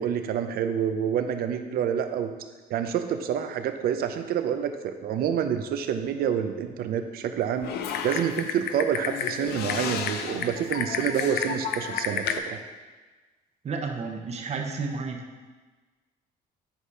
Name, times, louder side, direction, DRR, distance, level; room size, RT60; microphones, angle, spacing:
voice 1, 0.0-2.3 2.7-7.7 8.0-12.6, right 8 dB, 65° right, 8 dB, 0.6 m, -28 dB
Typing, 7.6-12.4, left 7 dB, 75° left, 0.6 m, -31 dB
voice 2, 13.6-15.2, right 4 dB, 40° right, 3 dB, 1.0 m, -31 dB
8.1 x 4.1 x 4.8 m, 1.3 s
cardioid pair, 110°, 17 cm